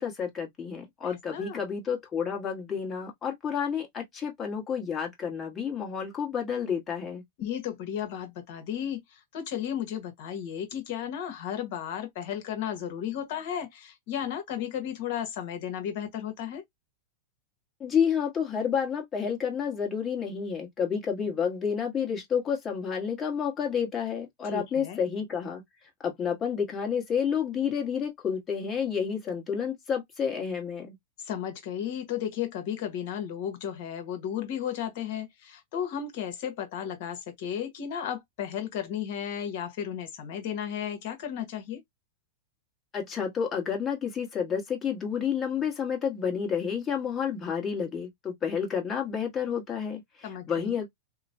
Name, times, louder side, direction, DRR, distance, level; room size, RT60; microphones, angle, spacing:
voice 1, 0.0-7.2 17.8-25.6 26.0-31.0 42.9-50.9, left 7 dB, 25° left, 1.3 m, -30 dB
voice 2, 1.0-1.6 7.4-16.6 24.4-25.0 31.2-41.8 50.2-50.8, left 9 dB, 60° left, 1.1 m, -34 dB
3.0 x 2.1 x 2.6 m
hypercardioid pair, 115°, 0 cm